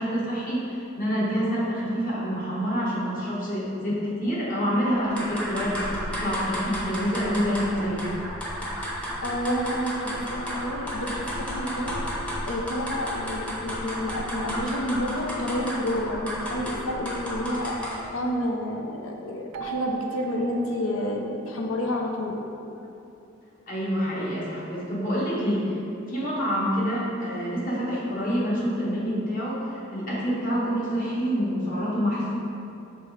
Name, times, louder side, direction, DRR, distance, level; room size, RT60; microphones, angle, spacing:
voice 1, 0.0-5.8 6.2-8.2 23.7-25.8 26.1-32.4, equal, 40° left, -7 dB, 1.4 m, -27 dB
sound 1, 5.0-18.1, equal, 5° left, 0.8 m, -33 dB
voice 2, 9.2-12.0 12.5-22.4, left 1 dB, 75° left, 1 dB, 0.6 m, -29 dB
Keyboard (musical), 19.5-22.1, right 12 dB, 75° right, 0.4 m, -39 dB
6.1 x 3.3 x 4.8 m, 2.8 s
head